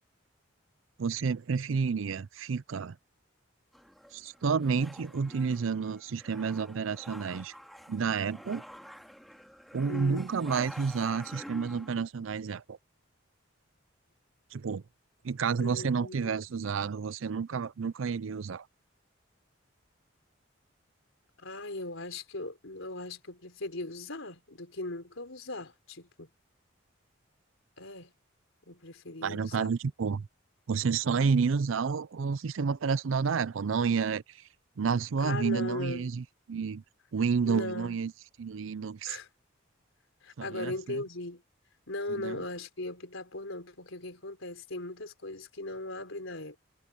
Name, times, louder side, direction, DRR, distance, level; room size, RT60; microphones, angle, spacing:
voice 1, 1.0-3.0 4.1-7.5 7.9-8.6 9.7-12.8 14.5-14.8 15.2-18.6 29.2-30.3 30.7-34.2 34.8-36.8 37.1-38.1 38.4-39.2 40.4-41.0 42.1-42.4, right 5 dB, 75° right, 0.5 m, -30 dB
sound 1, 3.7-11.9, equal, ahead, 2.4 m, -49 dB
voice 2, 9.9-10.3 15.6-16.5 21.4-26.3 27.8-28.1 28.7-29.8 35.2-36.1 37.5-38.0 39.0-39.3 40.2-41.4 41.9-46.6, left 2 dB, 80° left, 3.9 m, -38 dB
head